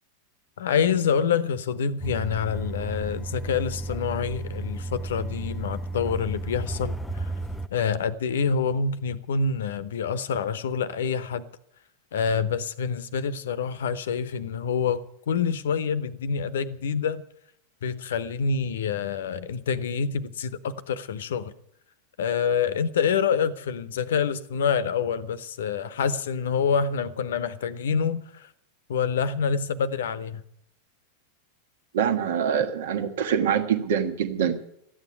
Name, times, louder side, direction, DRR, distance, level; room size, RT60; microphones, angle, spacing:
voice 1, 0.6-7.3 7.7-11.4 12.1-17.2 17.8-21.5 22.2-28.5 28.9-30.4, left 6 dB, 60° left, 0.9 m, -27 dB
sound 1, 2.0-7.7, right 2 dB, 5° left, 0.7 m, -33 dB
voice 2, 31.9-34.6, right 8 dB, 60° right, 1.5 m, -24 dB
13.5 x 8.9 x 9.6 m
figure-of-eight pair, 90°, 0 cm